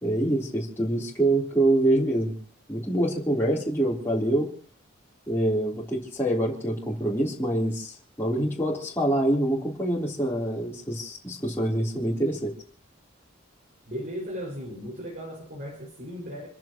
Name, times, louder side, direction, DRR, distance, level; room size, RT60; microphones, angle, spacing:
voice 1, 0.0-2.4 2.7-4.5 5.3-12.5, right 1 dB, 10° left, -6 dB, 3.7 m, -25 dB
voice 2, 13.9-16.5, equal, 45° right, -2 dB, 5.8 m, -36 dB
29.5 x 15.5 x 3.1 m, 0.41 s
head